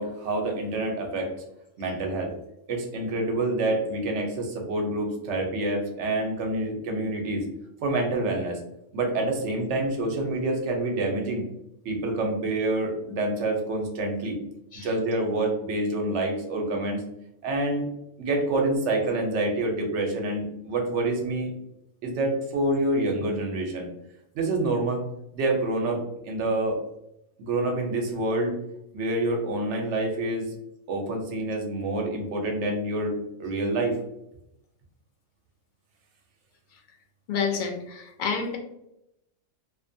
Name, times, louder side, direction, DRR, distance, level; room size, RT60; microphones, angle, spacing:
voice 1, 0.0-1.3 1.8-2.4 2.7-7.4 7.8-8.6 8.9-11.4 11.8-14.4 14.7-17.0 17.4-17.9 18.2-21.5 22.0-23.9 24.3-25.1 25.3-26.8 27.4-28.5 28.9-30.5 30.9-34.0, right 2 dB, 70° right, 2 dB, 0.9 m, -27 dB
voice 2, 37.3-38.6, left 6 dB, 60° left, 2 dB, 0.5 m, -29 dB
2.5 x 2.1 x 2.5 m, 0.83 s
omnidirectional pair, 1.3 m